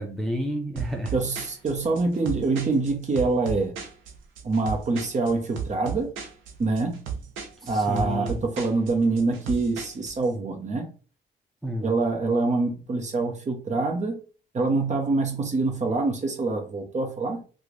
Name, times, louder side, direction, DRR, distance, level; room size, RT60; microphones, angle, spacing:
voice 1, 0.0-1.1 7.6-8.4 11.6-11.9, equal, ahead, 0.6 m, -30 dB
sound 1, 0.8-10.3, right 7 dB, 85° right, 0.8 m, -36 dB
voice 2, 1.1-3.7 4.4-6.1 6.6-7.0 7.6-10.9 11.8-14.1 14.5-17.4, right 3 dB, 35° right, 0.9 m, -25 dB
3.0 x 2.4 x 3.9 m
cardioid pair, 90°, 20 cm